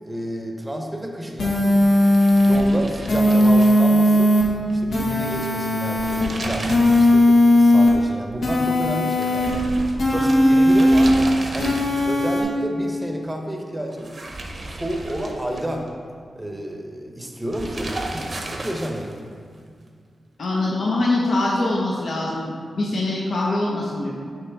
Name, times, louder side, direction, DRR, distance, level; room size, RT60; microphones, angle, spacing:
voice 1, 0.0-1.9 2.5-4.3 4.7-7.3 7.6-9.8 10.1-11.1 11.5-14.1 14.6-15.9 16.4-19.1, equal, 10° right, 1 dB, 0.7 m, -30 dB
sound 1, 1.4-2.6 3.1-4.4 4.9-6.2 6.7-7.9 8.4-9.5 10.0-11.1 11.6-12.4, left 1 dB, 85° left, 1.2 m, -17 dB
sound 2, 1.9-4.4 4.7-4.8 5.8-7.2 7.5-7.6 9.2-12.3 13.9-15.9 17.5-19.2, right 2 dB, 45° right, 0.7 m, -34 dB
voice 2, 10.1-10.6 20.4-24.1, left 2 dB, 65° left, -4 dB, 0.7 m, -23 dB
6.6 x 3.0 x 5.7 m, 2.2 s
wide cardioid pair, 110°, 0 cm